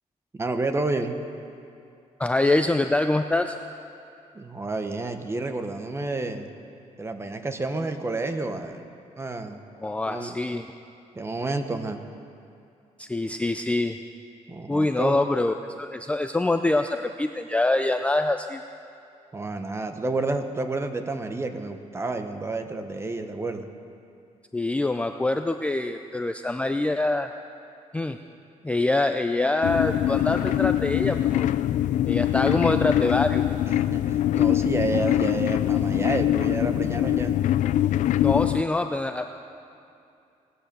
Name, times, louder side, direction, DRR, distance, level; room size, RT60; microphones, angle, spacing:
voice 1, 0.3-1.2 4.3-6.5 7.0-8.8 9.2-9.6 10.1-10.4 11.1-12.0 14.5-15.2 19.3-23.7 33.7-37.4, right 2 dB, 20° right, 7 dB, 1.0 m, -30 dB
voice 2, 2.2-3.6 9.8-10.6 13.0-14.0 14.7-18.6 24.5-27.3 27.9-28.2 28.6-31.5 32.1-33.4 38.2-39.3, left 2 dB, 10° left, 7 dB, 0.4 m, -25 dB
sound 1, 29.6-38.6, left 12 dB, 75° left, 0.4 m, -23 dB
18.5 x 10.5 x 6.8 m, 2.6 s
cardioid pair, 125°, 13 cm